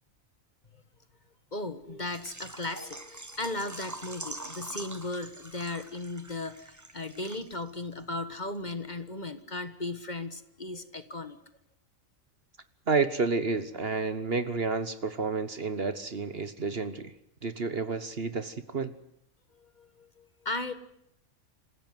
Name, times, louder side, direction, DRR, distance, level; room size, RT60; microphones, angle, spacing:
voice 1, 1.5-11.4 19.5-20.7, left 2 dB, 35° left, 11 dB, 1.6 m, -36 dB
Water / Liquid, 2.1-7.7 8.0-8.1 8.5-8.6, right 2 dB, 15° right, 1.1 m, -44 dB
voice 2, 12.9-17.1 17.4-18.9, right 4 dB, 45° right, 12 dB, 1.4 m, -30 dB
27.5 x 16.0 x 9.5 m, 0.76 s
omnidirectional pair, 1.4 m